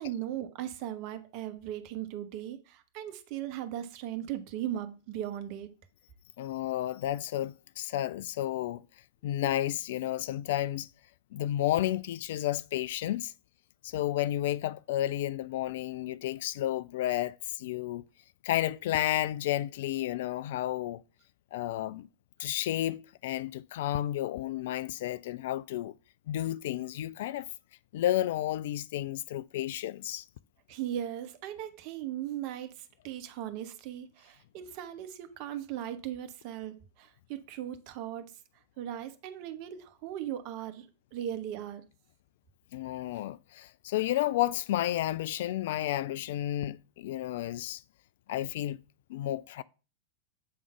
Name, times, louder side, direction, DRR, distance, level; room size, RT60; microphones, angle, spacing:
voice 1, 0.0-5.7 30.7-38.3 38.8-41.8, right 11 dB, 45° right, 1.0 m, -38 dB
voice 2, 6.4-8.8 9.2-10.9 11.3-13.3 13.8-18.0 18.4-21.0 21.5-22.1 22.4-25.9 26.3-27.5 27.9-30.2 42.7-47.8 48.3-48.8 49.1-49.6, left 13 dB, 55° left, 0.3 m, -31 dB
7.6 x 3.7 x 5.7 m
figure-of-eight pair, 95°, 0 cm